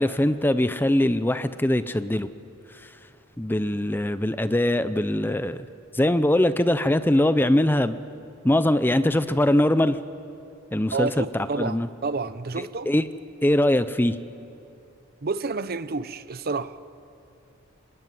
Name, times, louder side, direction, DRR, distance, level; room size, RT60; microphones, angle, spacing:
voice 1, 0.0-2.3 3.4-5.7 5.9-8.0 8.4-10.0 10.7-11.9 12.6-13.0 13.4-14.2, left 1 dB, 10° left, 0.5 m, -22 dB
voice 2, 10.9-12.9 15.2-16.8, right 4 dB, 45° right, 0.7 m, -29 dB
26.0 x 20.0 x 9.4 m
head